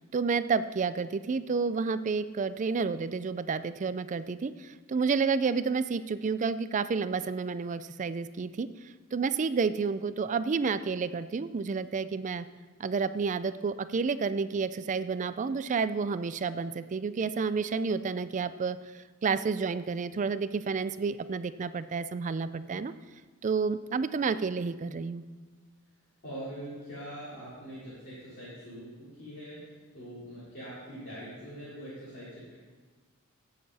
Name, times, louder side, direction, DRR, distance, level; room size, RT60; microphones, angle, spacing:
voice 1, 0.0-12.5 12.8-22.9 23.4-25.2, right 5 dB, 35° right, 13 dB, 0.3 m, -30 dB
voice 2, 26.2-29.7 29.9-32.5, equal, 45° left, -12 dB, 4.0 m, -43 dB
16.0 x 6.7 x 4.2 m, 1.3 s
head